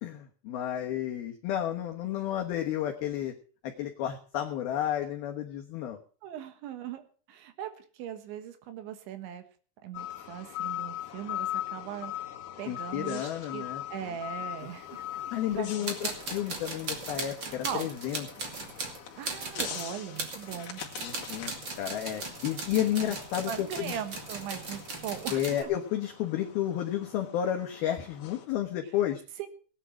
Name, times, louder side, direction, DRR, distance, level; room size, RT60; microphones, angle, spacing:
voice 1, 0.0-3.3 3.6-6.0 12.7-14.1 15.3-18.3 21.0-21.5 21.8-24.0 25.3-29.2, left 11 dB, 65° left, 3 dB, 2.6 m, -32 dB
voice 2, 6.2-9.4 9.8-13.7 13.9-16.4 17.6-17.9 19.2-20.8 23.0-23.2 23.5-25.7 29.4-29.5, right 9 dB, 75° right, 9 dB, 3.7 m, -40 dB
sound 1, 9.9-28.5, left 12 dB, 50° left, 2.9 m, -42 dB
sound 2, 15.5-15.6 15.8-25.6, right 3 dB, 35° right, 2.1 m, -38 dB
18.0 x 10.0 x 5.9 m, 0.41 s
omnidirectional pair, 5.5 m